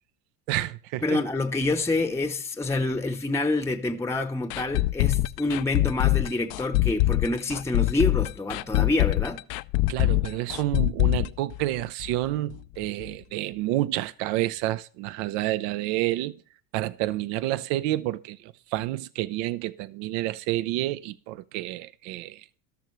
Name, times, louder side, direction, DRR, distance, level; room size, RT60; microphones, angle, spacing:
voice 1, 0.5-1.2 9.9-16.4 16.7-22.6, right 16 dB, 65° right, 0.9 m, -29 dB
voice 2, 1.0-9.4, left 2 dB, 5° left, 0.9 m, -27 dB
sound 1, 4.5-12.2 12.5-12.6 13.0-13.1, left 18 dB, 55° left, 0.6 m, -24 dB
13.0 x 12.5 x 3.2 m
supercardioid pair, 95°, 49 cm